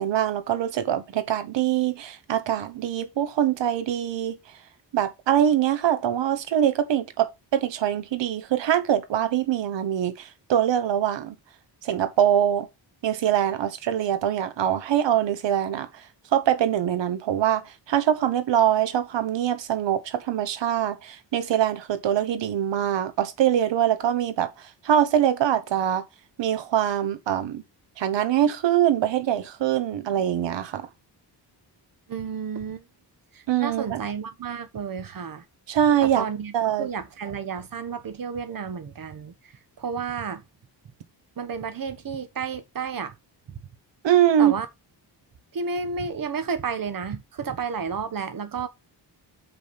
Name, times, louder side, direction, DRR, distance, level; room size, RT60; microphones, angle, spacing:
voice 1, 0.0-4.4 4.9-11.3 11.8-12.7 13.0-15.9 16.3-24.5 24.8-26.0 26.4-27.6 28.0-30.9 33.5-34.0 35.7-36.3 36.5-36.9 44.0-44.5, right 10 dB, 85° right, 1.2 m, -23 dB
voice 2, 32.1-32.8 33.3-35.4 36.0-39.3 39.8-40.4 41.4-43.1 44.4-44.7 45.5-48.7, right 6 dB, 50° right, 1.3 m, -31 dB
6.3 x 5.4 x 5.7 m
cardioid pair, 105°, 43 cm